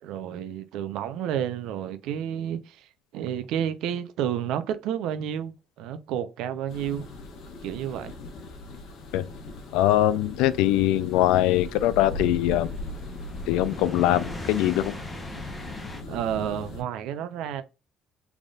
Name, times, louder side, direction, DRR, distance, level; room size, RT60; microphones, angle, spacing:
voice 1, 0.0-7.1 7.6-8.1 16.1-17.6, right 9 dB, 65° right, 0.6 m, -31 dB
sound 1, 6.7-16.8, left 2 dB, 55° left, 1.1 m, -39 dB
sound 2, 9.0-16.0, left 2 dB, 10° left, 0.7 m, -40 dB
voice 2, 9.7-12.7 13.5-14.9, left 14 dB, 85° left, 0.3 m, -22 dB
3.9 x 3.5 x 2.3 m
cardioid pair, 175°, 0 cm